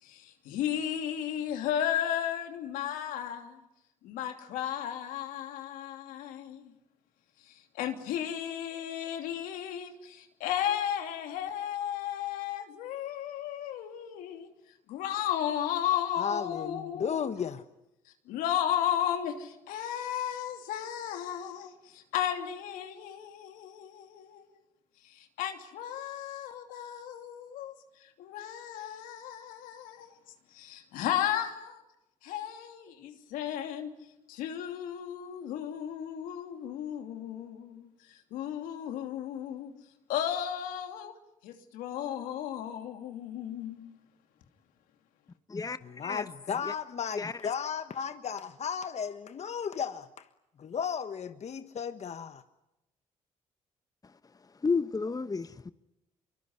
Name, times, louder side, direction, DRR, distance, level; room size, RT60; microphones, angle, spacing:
voice 1, 0.0-3.6 4.0-6.7 7.4-14.5 14.9-17.3 18.3-24.5 25.0-30.1 30.5-31.8 32.2-33.9 34.3-39.7 40.1-41.1 41.4-43.9, left 10 dB, 85° left, 2.9 m, -34 dB
voice 2, 16.2-17.6 45.8-50.3 50.6-52.4, left 7 dB, 55° left, 1.3 m, -34 dB
voice 3, 45.5-46.3 46.6-46.7 47.1-47.5 54.0-54.1 54.6-55.7, left 4 dB, 25° left, 1.0 m, -32 dB
25.5 x 23.5 x 9.7 m
supercardioid pair, 60°, 14 cm